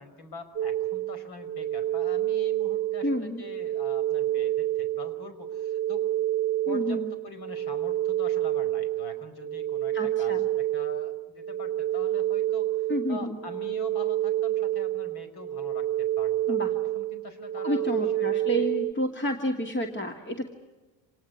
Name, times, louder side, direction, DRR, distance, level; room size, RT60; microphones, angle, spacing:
voice 1, 0.0-6.1 6.7-16.6 16.8-18.7, left 3 dB, 50° left, 9 dB, 5.4 m, -44 dB
sound 1, 0.6-18.9, right 13 dB, 25° right, 0.8 m, -28 dB
voice 2, 3.0-3.4 6.7-7.1 9.9-10.5 12.9-13.4 16.5-16.7 17.6-20.5, equal, 20° left, 4 dB, 2.7 m, -30 dB
27.5 x 19.0 x 9.6 m, 1.2 s
hypercardioid pair, 75°, 50 cm